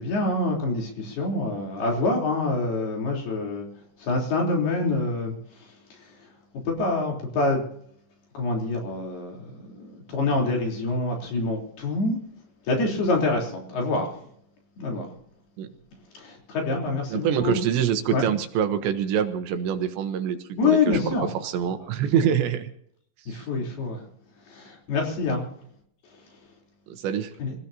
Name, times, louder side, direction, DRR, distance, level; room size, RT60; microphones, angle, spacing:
voice 1, 0.0-3.7 4.0-6.3 6.7-7.7 8.3-12.2 12.6-14.3 14.8-15.1 16.1-17.6 18.1-18.3 20.6-21.3 22.1-22.3 23.3-24.0 24.4-25.5 26.0-26.5 27.4-27.5, left 3 dB, 60° left, 0 dB, 5.4 m, -26 dB
voice 2, 17.1-21.0 21.4-22.7 23.3-23.5 26.9-27.3, right 8 dB, 75° right, 8 dB, 3.3 m, -25 dB
26.0 x 16.5 x 2.8 m, 0.67 s
omnidirectional pair, 5.3 m